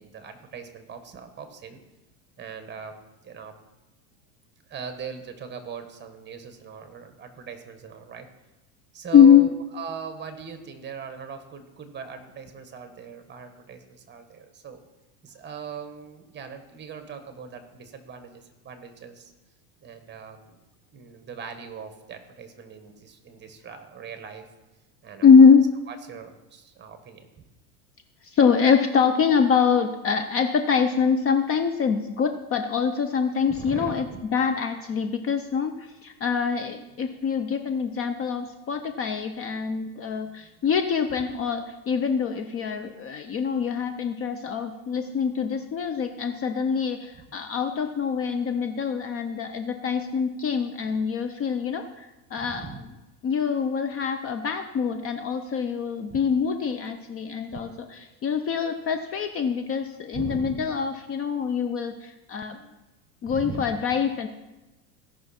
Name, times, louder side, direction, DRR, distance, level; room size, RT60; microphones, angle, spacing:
voice 1, 0.0-1.8 2.4-2.9 3.2-3.5 4.7-8.3 8.9-14.8 15.2-19.3 19.8-20.6 20.9-24.5 25.0-25.3 25.9-27.3 33.5-34.2 39.6-39.7 40.2-40.7 45.0-45.1 52.4-52.9 56.1-56.2 57.5-58.1 60.1-60.6 63.3-63.7, right 6 dB, 25° right, 7 dB, 1.5 m, -40 dB
voice 2, 9.1-9.5 25.2-25.7 28.2-52.7 53.2-57.7 58.2-62.6 63.2-64.3, left 6 dB, 30° left, 7 dB, 0.7 m, -23 dB
16.5 x 5.8 x 4.3 m, 1.0 s
supercardioid pair, 110°, 46 cm